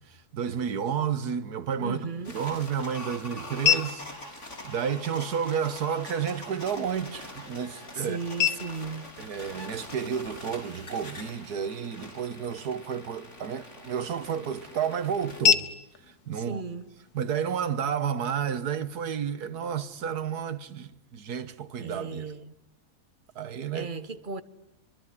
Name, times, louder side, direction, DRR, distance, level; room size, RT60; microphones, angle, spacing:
voice 1, 0.1-2.0 2.3-4.0 4.3-8.2 9.2-15.7 16.1-16.6 17.1-22.3 23.4-23.9, right 7 dB, 80° right, 1.8 m, -31 dB
voice 2, 1.8-2.4 7.9-9.1 16.3-16.9 21.8-22.6 23.7-24.4, right 4 dB, 35° right, 1.3 m, -35 dB
sound 1, 1.9-17.9, left 7 dB, 80° left, 2.0 m, -34 dB
sound 2, 2.2-15.4, left 1 dB, 45° left, 4.7 m, -44 dB
24.5 x 24.5 x 9.9 m
omnidirectional pair, 1.7 m